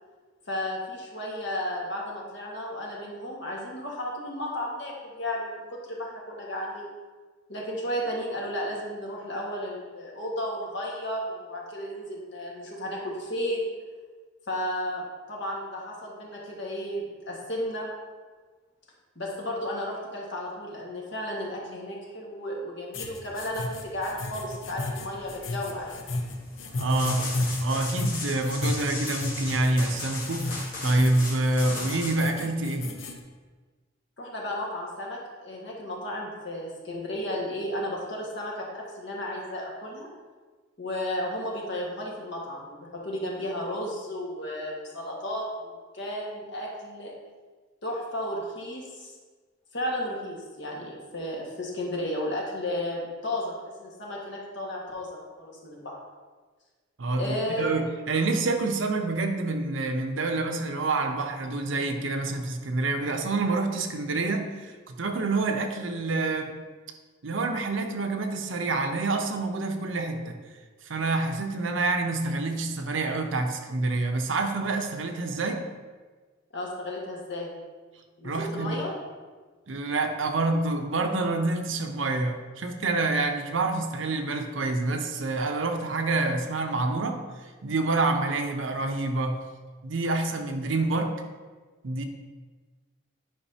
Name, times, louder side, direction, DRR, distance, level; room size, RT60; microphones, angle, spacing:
voice 1, 0.5-6.9 7.5-13.6 14.5-17.9 19.1-26.0 34.2-40.1 40.8-47.1 47.8-49.1 49.7-53.5 53.8-56.0 57.1-57.8 76.5-77.5 78.2-78.9, left 1 dB, 65° left, -3 dB, 1.6 m, -33 dB
sound 1, 22.9-33.2, left 2 dB, 85° left, 0.7 m, -33 dB
sound 2, 23.4-32.1, left 2 dB, 45° left, 1.5 m, -39 dB
voice 2, 26.8-27.3 27.6-30.5 30.8-32.9 57.0-66.6 67.2-70.4 70.9-75.6 78.2-78.8 79.7-87.2 87.6-89.4 89.8-91.2 91.8-92.0, right 2 dB, 80° right, 5 dB, 0.7 m, -27 dB
10.0 x 5.2 x 2.8 m, 1.4 s
head